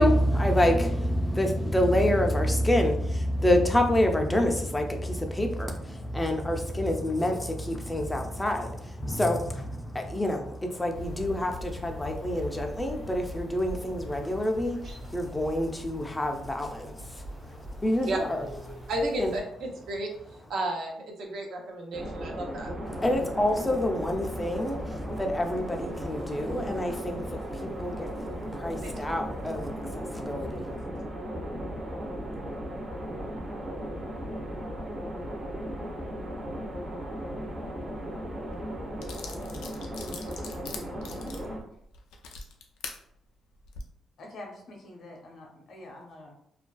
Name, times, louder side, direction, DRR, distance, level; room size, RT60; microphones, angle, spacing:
voice 1, 0.0-18.9 19.2-19.3 22.9-30.8, left 1 dB, 10° left, 3 dB, 0.4 m, -27 dB
sound 1, 10.9-19.4, left 1 dB, 55° right, 1.1 m, -42 dB
voice 2, 18.9-22.7 28.8-29.1, right 1 dB, 70° right, 1 dB, 0.6 m, -33 dB
sound 2, 21.9-41.6, equal, 30° right, 0.7 m, -36 dB
sound 3, 38.5-38.6 39.0-43.0 43.6-43.8, left 5 dB, 90° left, 0.3 m, -42 dB
voice 3, 44.2-46.3, left 1 dB, 65° left, 0 dB, 0.7 m, -45 dB
2.4 x 2.2 x 2.2 m, 0.70 s
cardioid pair, 90°, 0 cm